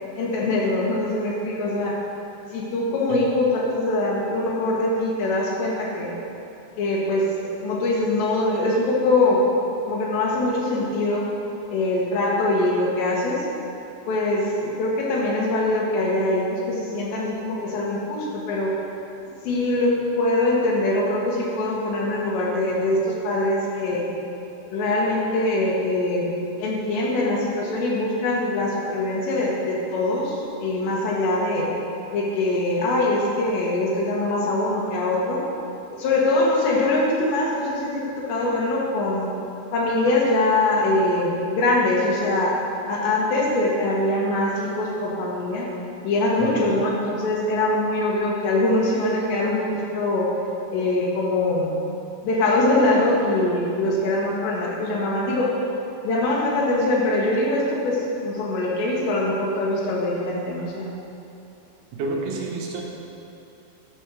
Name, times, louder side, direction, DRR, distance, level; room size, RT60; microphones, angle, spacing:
voice 1, 0.2-2.0 2.5-6.2 6.8-9.5 9.9-11.3 11.7-13.5 14.1-18.8 19.2-24.1 24.7-26.3 26.6-31.7 32.1-35.4 35.9-39.3 39.7-42.6 42.9-45.7 46.0-50.3 50.7-51.8 52.2-55.5 56.0-60.9, left 2 dB, 75° left, -3 dB, 3.7 m, -23 dB
voice 2, 62.0-62.8, right 3 dB, 75° right, -2 dB, 2.9 m, -29 dB
11.5 x 5.4 x 6.3 m, 2.8 s
omnidirectional pair, 5.1 m